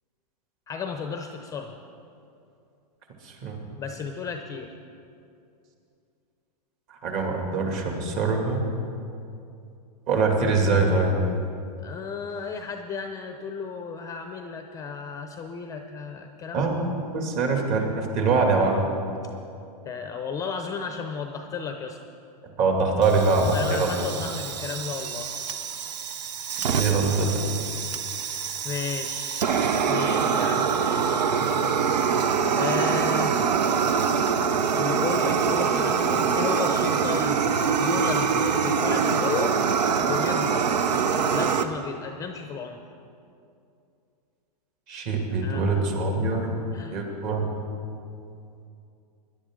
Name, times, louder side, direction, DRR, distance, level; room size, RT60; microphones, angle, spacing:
voice 1, 0.7-1.8 3.8-4.7 11.8-16.7 19.9-22.0 23.5-25.3 28.6-31.3 32.5-33.3 34.8-39.6 40.1-40.7 41.3-42.8 45.4-45.7 46.7-47.0, left 5 dB, 15° left, 6 dB, 0.6 m, -33 dB
voice 2, 3.2-3.6 7.0-8.6 10.1-11.2 16.5-18.8 22.6-23.9 26.7-27.3 44.9-46.5 46.9-47.4, right 3 dB, 40° right, 1 dB, 2.3 m, -23 dB
Fire, 23.0-41.6, right 6 dB, 85° right, 0.8 m, -25 dB
18.0 x 11.0 x 3.7 m, 2.5 s
hypercardioid pair, 140°, 21 cm